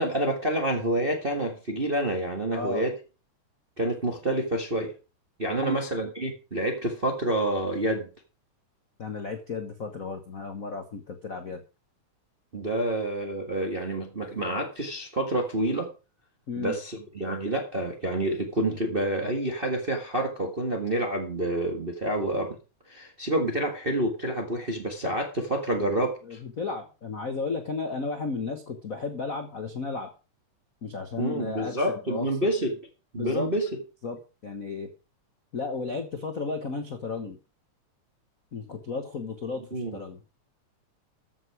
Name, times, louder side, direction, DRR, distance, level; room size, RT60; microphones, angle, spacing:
voice 1, 0.0-2.9 3.8-4.9 5.4-8.1 12.5-15.9 16.5-22.5 22.9-26.4 31.2-32.8 33.1-33.7 39.7-40.0, right 1 dB, 25° right, 2 dB, 1.2 m, -28 dB
voice 2, 2.5-2.8 5.6-5.8 9.0-11.6 16.5-16.8 26.2-30.1 30.8-32.5 33.2-33.5 34.0-34.2 34.4-34.9 35.5-37.4 38.5-40.2, left 4 dB, 75° left, 6 dB, 0.7 m, -34 dB
13.5 x 7.8 x 4.9 m, 0.33 s
omnidirectional pair, 3.5 m